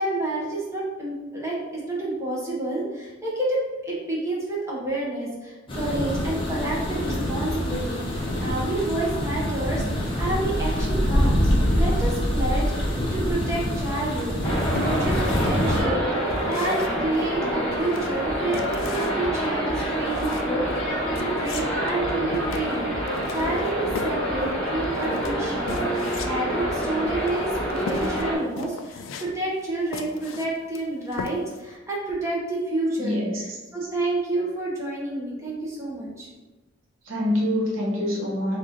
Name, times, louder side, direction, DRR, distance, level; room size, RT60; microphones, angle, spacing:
voice 1, 0.0-14.3 14.7-27.5 27.8-36.3, right 2 dB, 15° right, -5 dB, 0.9 m, -29 dB
sound 1, 5.7-15.8, equal, 25° left, 0.7 m, -25 dB
sound 2, 14.2-31.7, left 4 dB, 70° left, 0.3 m, -39 dB
sound 3, 14.4-28.3, equal, 5° left, 1.5 m, -27 dB
voice 2, 33.0-33.4 37.1-38.6, left 1 dB, 75° right, -3 dB, 1.1 m, -25 dB
4.1 x 2.5 x 3.6 m, 1.2 s
head